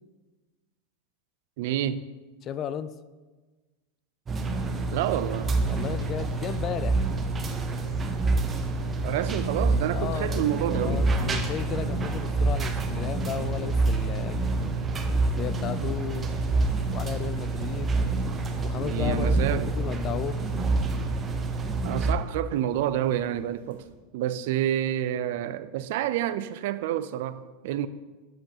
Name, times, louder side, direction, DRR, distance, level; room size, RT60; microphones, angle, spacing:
voice 1, 1.6-2.1 4.9-5.5 9.0-11.1 18.8-19.7 21.8-23.8 24.1-27.9, right 11 dB, 70° right, 0.3 m, -28 dB
voice 2, 2.4-2.9 5.7-7.1 9.9-14.5 15.1-16.6 16.9-18.1 18.6-20.4, left 9 dB, 40° left, 0.3 m, -35 dB
sound 1, 4.3-22.1, right 3 dB, 25° right, 0.6 m, -27 dB
sound 2, 5.0-23.9, left 3 dB, 90° left, 1.1 m, -42 dB
7.2 x 5.4 x 2.8 m
hypercardioid pair, 105°, 0 cm